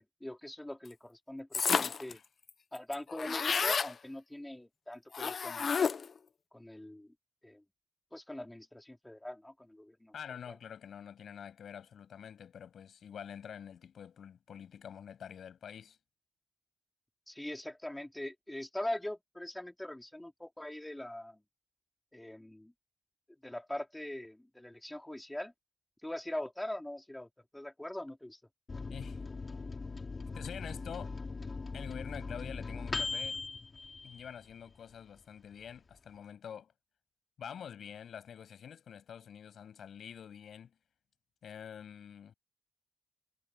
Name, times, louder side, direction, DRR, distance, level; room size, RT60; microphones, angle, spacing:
voice 1, 0.0-2.2 2.7-5.9 6.5-7.1 7.4-7.6 8.1-10.1 10.5-10.6 17.3-21.4 22.1-22.7 23.4-25.5 26.0-28.4, left 1 dB, 10° left, 4.5 m, -42 dB
sound 1, 1.5-2.1 2.5-2.6 2.8-3.9 5.1-6.2, left 6 dB, 55° left, 0.6 m, -31 dB
voice 2, 10.1-16.0 28.9-29.2 30.3-31.2 31.7-33.4 34.0-36.7 37.4-40.7 41.4-42.3, left 8 dB, 80° left, 7.3 m, -47 dB
Microwave oven, 28.7-34.8 35.2-35.3 35.5-36.2, left 4 dB, 35° left, 3.0 m, -40 dB
wide cardioid pair, 110°, 0 cm